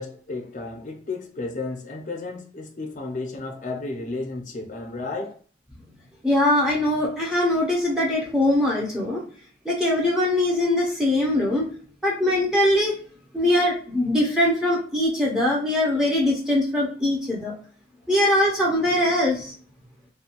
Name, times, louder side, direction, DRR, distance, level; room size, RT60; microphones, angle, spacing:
voice 1, 0.0-5.4, left 3 dB, 45° left, 0.5 m, -33 dB
voice 2, 6.2-9.2 9.6-11.7 12.0-12.9 13.3-17.5 18.1-19.5, left 1 dB, 5° right, 0.6 m, -22 dB
2.5 x 2.3 x 2.9 m
head